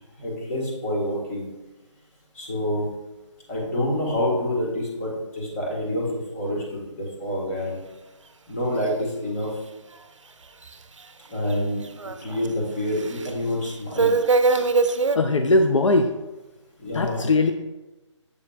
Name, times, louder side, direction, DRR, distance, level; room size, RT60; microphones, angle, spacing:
voice 1, 0.2-1.5 2.3-2.9 3.5-7.8 8.5-9.5 11.3-11.8 12.2-14.2 16.8-17.2, left 1 dB, 30° left, -3 dB, 1.8 m, -27 dB
sound 1, 10.7-10.8 11.5-11.6 11.8-12.5 13.0-13.3 13.7-15.2, right 4 dB, 70° right, 0.5 m, -21 dB
voice 2, 15.1-16.1 16.9-17.5, left 2 dB, 70° left, 6 dB, 0.5 m, -20 dB
7.3 x 6.3 x 2.5 m, 1.1 s
figure-of-eight pair, 150°, 16 cm